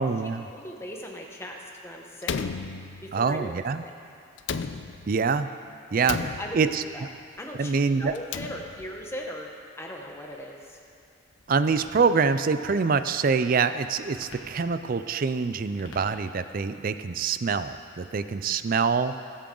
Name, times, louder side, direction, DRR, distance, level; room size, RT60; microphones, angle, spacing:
voice 1, 0.0-0.5 3.1-3.8 5.1-5.5 5.9-6.2 6.5-6.8 7.6-8.1 11.5-19.1, right 5 dB, 45° right, 11 dB, 0.4 m, -25 dB
voice 2, 0.5-2.4 3.0-3.9 6.1-6.7 6.9-7.1 7.4-9.5 9.8-10.8, equal, 10° left, 0 dB, 1.1 m, -39 dB
Slam, 2.2-3.4 4.4-5.3 6.0-6.9 8.1-9.0, left 5 dB, 65° left, 0.5 m, -34 dB
sound 1, 9.8-16.7, left 1 dB, 80° left, 1.6 m, -52 dB
20.5 x 8.5 x 3.8 m, 2.4 s
head